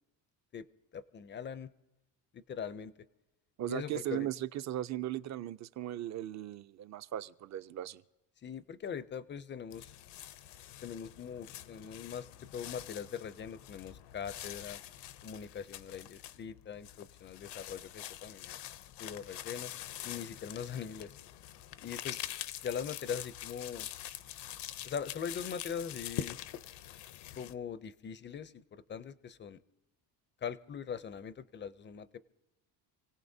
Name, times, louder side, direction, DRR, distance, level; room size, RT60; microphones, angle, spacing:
voice 1, 0.9-1.7 2.3-2.9 3.7-4.3 8.4-9.9 10.8-12.3 12.5-14.8 15.2-18.6 19.0-19.7 20.0-21.1 21.8-22.2 22.6-23.9 24.8-26.4 27.4-29.6 30.4-32.2, left 7 dB, 25° left, 0.4 m, -41 dB
voice 2, 3.6-8.0, right 13 dB, 40° right, 0.4 m, -37 dB
sound 1, 9.7-27.5, left 12 dB, 70° left, 0.6 m, -45 dB
28.5 x 17.0 x 2.7 m
cardioid pair, 140°, 43 cm